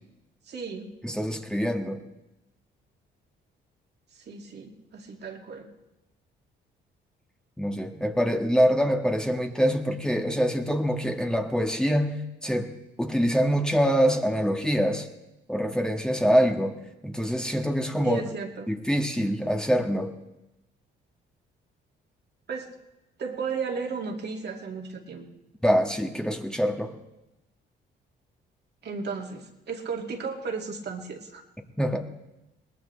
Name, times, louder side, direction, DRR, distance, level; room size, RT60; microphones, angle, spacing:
voice 1, 0.5-0.9 4.1-5.7 18.0-18.7 22.5-22.7 23.2-25.3 28.8-31.4, right 5 dB, 60° right, 2 dB, 2.3 m, -34 dB
voice 2, 1.0-2.0 7.6-12.7 13.0-15.1 15.5-16.8 17.0-18.2 18.7-20.1 25.6-26.9 31.8-32.1, equal, 5° left, 3 dB, 1.5 m, -25 dB
22.5 x 19.0 x 3.4 m, 0.95 s
cardioid pair, 90°, 20 cm